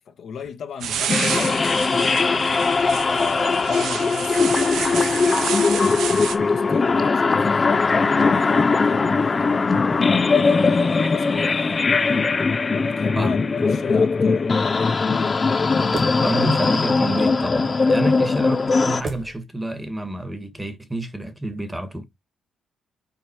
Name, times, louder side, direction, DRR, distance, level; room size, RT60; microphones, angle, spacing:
voice 1, 0.0-2.5 3.1-11.8 12.8-15.4, left 6 dB, 60° left, 1.4 m, -36 dB
sound 1, 0.8-6.4, right 8 dB, 75° right, 1.1 m, -29 dB
sound 2, 1.1-19.0, left 4 dB, 30° left, 0.6 m, -20 dB
sound 3, 10.6-19.4, right 3 dB, 40° right, 2.0 m, -41 dB
voice 2, 16.2-22.0, right 1 dB, 10° right, 1.6 m, -29 dB
5.6 x 4.5 x 4.5 m
cardioid pair, 90°, 0 cm